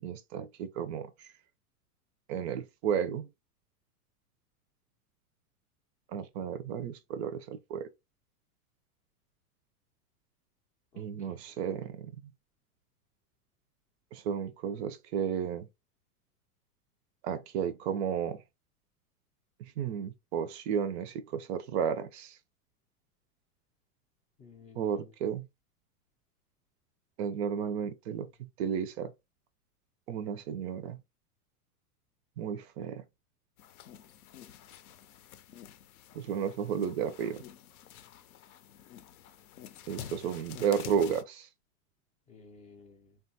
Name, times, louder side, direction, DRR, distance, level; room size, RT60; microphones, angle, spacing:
voice 1, 0.0-1.1 2.3-3.3 6.1-7.9 11.0-12.2 14.1-15.7 17.2-18.4 19.8-22.4 24.8-25.5 27.2-29.1 30.1-31.0 32.4-33.0 36.1-37.4 39.9-41.5, right 8 dB, 50° right, 0.5 m, -33 dB
voice 2, 10.9-11.8 24.4-25.1 40.2-40.3 42.3-43.2, left 5 dB, 15° left, 0.4 m, -55 dB
sound 1, 33.6-41.2, left 10 dB, 70° left, 0.6 m, -49 dB
3.4 x 2.3 x 2.6 m
hypercardioid pair, 110°, 45 cm